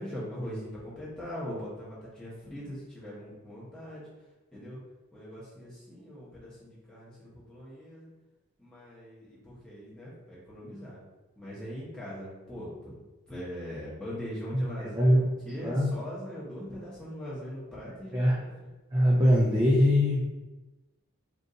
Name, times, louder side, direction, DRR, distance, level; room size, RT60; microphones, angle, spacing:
voice 1, 0.0-4.1 4.5-4.8 5.1-8.1 8.6-11.0 11.4-12.9 13.3-18.5, equal, 5° left, -9 dB, 1.0 m, -41 dB
voice 2, 14.9-15.3 15.6-15.9 18.1-18.4 18.9-20.3, equal, 20° right, -6 dB, 0.4 m, -22 dB
3.7 x 2.7 x 2.7 m, 1.1 s
head